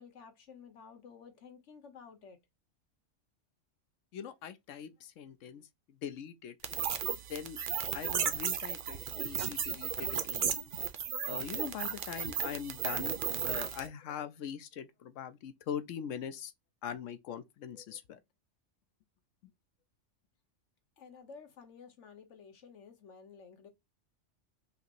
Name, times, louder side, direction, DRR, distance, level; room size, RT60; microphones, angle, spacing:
voice 1, 0.0-2.4 21.0-23.7, left 5 dB, 70° left, 1.4 m, -53 dB
voice 2, 4.1-6.5 7.3-7.6 7.9-10.6 11.3-16.5 16.8-18.2, left 8 dB, 90° left, 1.0 m, -42 dB
sound 1, 6.6-13.9, right 7 dB, 50° right, 0.7 m, -35 dB
5.6 x 2.9 x 2.6 m
omnidirectional pair, 1.3 m